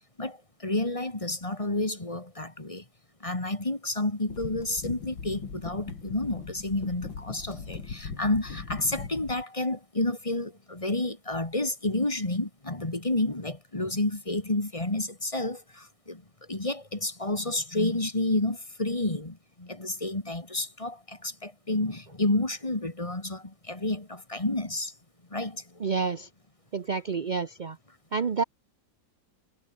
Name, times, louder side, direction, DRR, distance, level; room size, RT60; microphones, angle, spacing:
voice 1, 0.2-2.8 3.2-24.9 25.3-25.9, left 2 dB, 15° left, 2.3 m, -30 dB
Deep Weather, 4.3-9.4, left 5 dB, 85° left, 3.9 m, -39 dB
voice 2, 25.8-26.3 26.7-27.8 28.1-28.4, right 5 dB, 50° right, 0.5 m, -29 dB
omnidirectional pair, 2.0 m